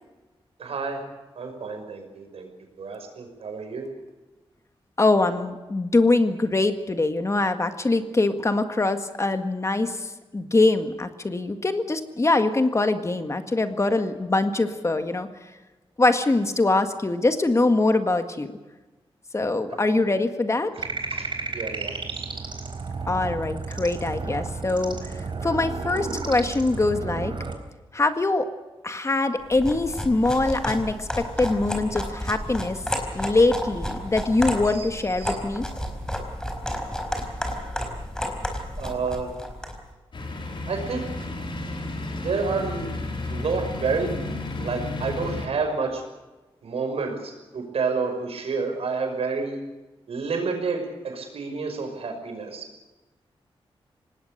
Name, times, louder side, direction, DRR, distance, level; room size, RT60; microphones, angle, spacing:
voice 1, 0.6-1.0 1.4-2.5 2.8-3.9 19.7-19.8 21.1-21.3 21.5-22.2 34.7-34.8 35.2-35.4 38.8-39.3 40.7-41.3 42.2-42.9 43.3-46.0 46.6-49.6 50.1-52.7, right 4 dB, 85° right, 4 dB, 5.7 m, -29 dB
voice 2, 5.0-15.3 16.0-18.5 19.3-20.7 23.1-25.2 25.4-27.3 27.9-28.5 28.8-32.8 33.1-35.7, left 2 dB, 30° left, 8 dB, 1.8 m, -23 dB
sound 1, 20.8-27.5, right 4 dB, 55° right, 3.9 m, -32 dB
sound 2, 29.5-39.8, equal, 5° left, 4.5 m, -31 dB
sound 3, 40.1-45.5, left 2 dB, 55° left, 4.5 m, -32 dB
25.5 x 19.5 x 6.7 m, 1.2 s
wide cardioid pair, 105°, 10 cm